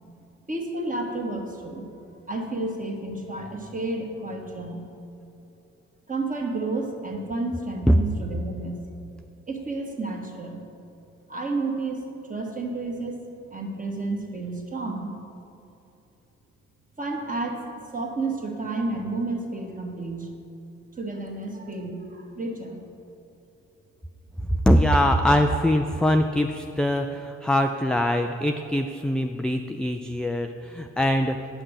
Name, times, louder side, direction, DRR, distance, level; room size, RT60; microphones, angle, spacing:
voice 1, 0.5-4.8 6.1-8.8 9.5-10.6 11.3-13.2 13.5-15.1 17.0-20.3 21.0-22.8 25.4-25.6, right 2 dB, 25° right, 1 dB, 1.6 m, -31 dB
voice 2, 24.7-31.4, equal, 5° left, 5 dB, 0.3 m, -22 dB
8.7 x 5.8 x 6.4 m, 2.8 s
hypercardioid pair, 50°, 35 cm